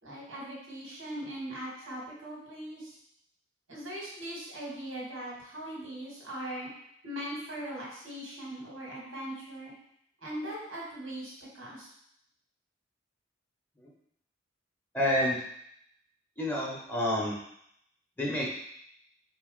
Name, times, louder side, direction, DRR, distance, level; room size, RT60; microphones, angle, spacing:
voice 1, 0.0-2.9 3.7-6.7 7.0-9.7 10.2-11.9, right 1 dB, 85° right, -4 dB, 1.8 m, -40 dB
voice 2, 14.9-15.4 16.4-17.4 18.2-18.5, left 1 dB, 10° left, -4 dB, 0.9 m, -28 dB
4.1 x 3.0 x 3.8 m, 0.72 s
head